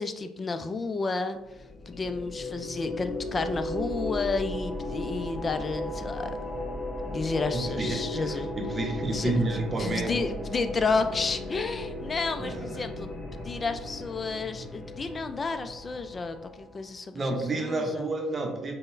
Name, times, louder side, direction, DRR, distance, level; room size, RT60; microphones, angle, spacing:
voice 1, 0.0-1.4 1.9-6.3 7.1-8.5 9.1-13.1 13.4-18.1, left 4 dB, 35° left, 9 dB, 0.3 m, -31 dB
sound 1, 1.4-16.9, left 1 dB, 15° left, 1.0 m, -36 dB
voice 2, 7.5-10.2 12.4-12.9 17.1-18.7, right 2 dB, 30° right, 2 dB, 0.7 m, -30 dB
5.3 x 2.1 x 2.5 m, 1.0 s
hypercardioid pair, 50°, 0 cm